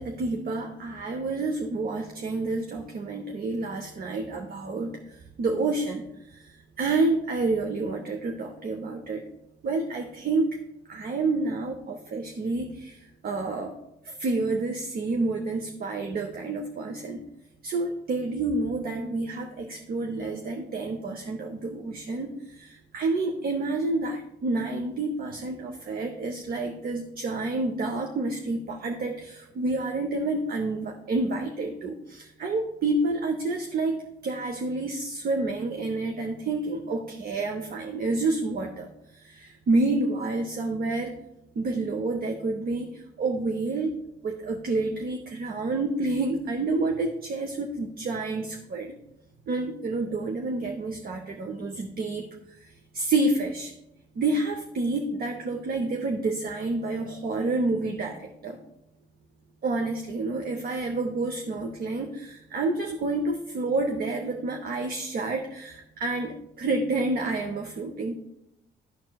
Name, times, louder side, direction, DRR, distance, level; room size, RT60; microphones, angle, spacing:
voice 1, 0.0-5.0 5.4-6.1 6.3-6.5 6.8-9.2 9.6-10.6 10.9-13.0 13.2-13.7 14.0-17.2 17.6-34.0 34.2-38.9 39.1-41.1 41.6-44.0 44.2-48.9 49.5-52.3 52.9-53.7 54.2-58.6 59.6-68.1, right 2 dB, 50° right, 4 dB, 0.7 m, -29 dB
12.5 x 4.3 x 2.3 m, 0.88 s
cardioid pair, 90°, 20 cm